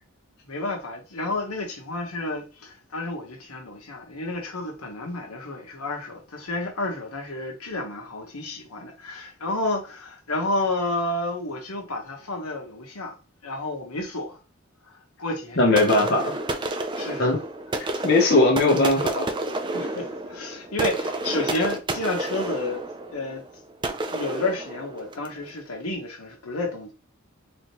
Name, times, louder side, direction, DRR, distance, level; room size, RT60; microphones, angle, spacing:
voice 1, 0.5-13.1 13.4-14.4 14.9-16.1 16.9-17.3 19.7-22.8 23.1-23.4 24.1-26.9, left 2 dB, 80° left, 1.3 m, -31 dB
voice 2, 15.6-16.4 17.2-17.4 18.0-19.3, left 2 dB, 45° left, 0.9 m, -19 dB
sound 1, 15.8-25.4, right 2 dB, 20° right, 0.4 m, -30 dB
4.1 x 3.1 x 3.0 m
head